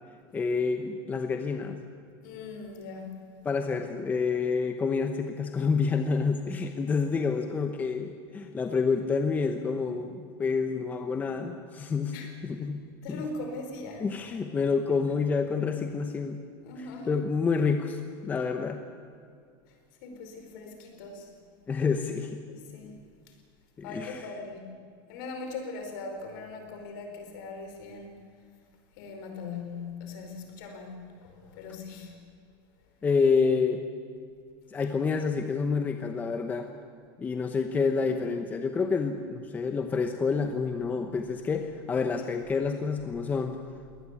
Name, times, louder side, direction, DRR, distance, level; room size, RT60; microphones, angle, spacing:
voice 1, 0.3-1.8 3.4-12.1 12.4-12.8 13.1-13.2 14.0-16.4 17.1-18.8 21.7-22.4 23.8-24.3 33.0-33.8 34.7-36.7 37.2-43.6, left 5 dB, 15° left, 6 dB, 0.9 m, -28 dB
voice 2, 2.2-3.2 12.1-12.3 13.0-14.1 15.4-15.6 16.6-17.1 19.7-19.8 20.0-21.3 22.5-22.9 23.8-24.7 25.1-28.2 28.9-32.2, left 3 dB, 60° left, 4 dB, 4.9 m, -40 dB
22.5 x 18.5 x 8.4 m, 2.2 s
supercardioid pair, 170°, 12 cm